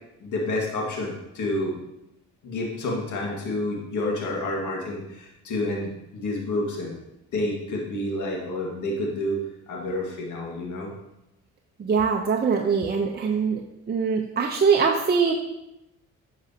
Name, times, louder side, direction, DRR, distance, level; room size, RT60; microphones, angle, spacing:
voice 1, 0.2-1.7 2.4-7.0 7.3-9.4 9.7-10.9, left 1 dB, 75° left, -1 dB, 2.0 m, -29 dB
voice 2, 11.8-13.6 13.9-15.3, right 5 dB, 35° right, 0 dB, 0.8 m, -22 dB
10.5 x 6.1 x 2.9 m, 0.90 s
cardioid pair, 90°, 30 cm